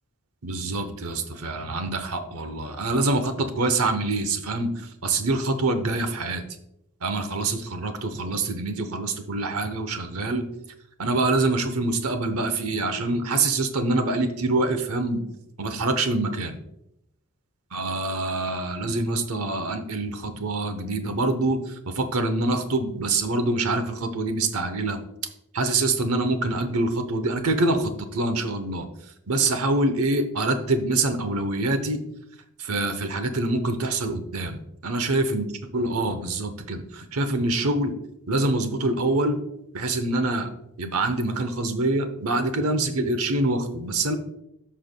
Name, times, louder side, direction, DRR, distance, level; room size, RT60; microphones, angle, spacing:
voice 1, 0.4-6.4 7.0-10.5 11.0-15.2 15.6-16.6 17.7-25.0 25.5-28.9 29.3-32.0 32.6-35.5 35.7-37.9 38.3-39.4 39.7-40.5 40.8-44.1, right 2 dB, 80° right, 8 dB, 0.9 m, -25 dB
13.0 x 5.6 x 2.2 m, 0.82 s
head